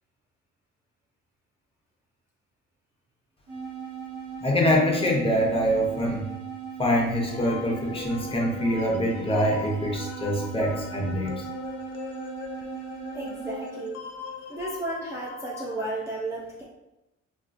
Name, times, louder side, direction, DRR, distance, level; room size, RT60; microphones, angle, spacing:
sound 1, 3.5-13.9, right 7 dB, 50° right, 1.2 m, -38 dB
voice 1, 4.4-6.2 6.8-11.4, equal, 20° left, -1 dB, 0.8 m, -24 dB
sound 2, 7.1-15.9, left 5 dB, 55° left, 0.5 m, -41 dB
voice 2, 13.1-14.0 14.5-16.6, right 2 dB, 10° right, -6 dB, 0.5 m, -33 dB
3.4 x 2.4 x 2.5 m, 0.92 s
cardioid pair, 90°, 30 cm